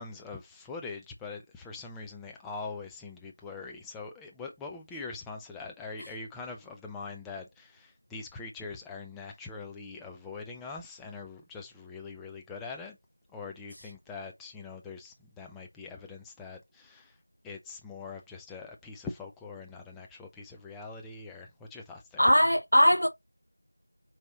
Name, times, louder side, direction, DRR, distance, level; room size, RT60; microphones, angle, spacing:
voice 1, 0.0-13.0 13.3-17.2 17.4-22.2, left 4 dB, 5° left, 0.3 m, -43 dB
voice 2, 22.2-23.1, equal, 85° left, 0.7 m, -20 dB
4.7 x 2.9 x 3.8 m
figure-of-eight pair, 175°, 0 cm